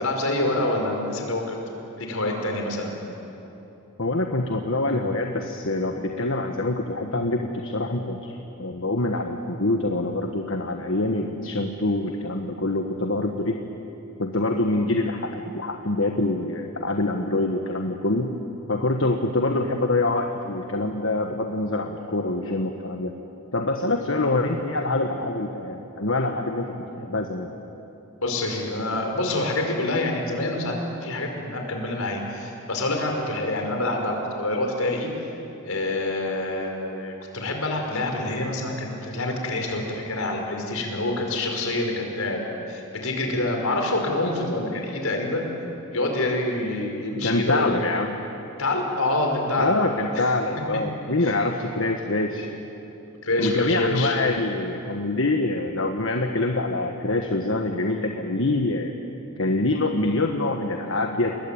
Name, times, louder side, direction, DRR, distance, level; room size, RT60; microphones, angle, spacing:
voice 1, 0.0-1.6 2.0-2.9 28.2-35.1 35.6-42.4 42.7-45.4 45.9-47.7 48.6-50.3 51.2-51.3 53.2-54.1, left 2 dB, 80° left, 2 dB, 5.1 m, -26 dB
voice 2, 4.0-13.6 14.2-18.3 18.7-23.1 23.5-26.7 27.0-27.5 47.2-48.2 49.6-52.5 53.4-58.9 59.4-61.3, left 2 dB, 65° left, 3 dB, 1.5 m, -25 dB
29.5 x 21.5 x 8.8 m, 3.0 s
head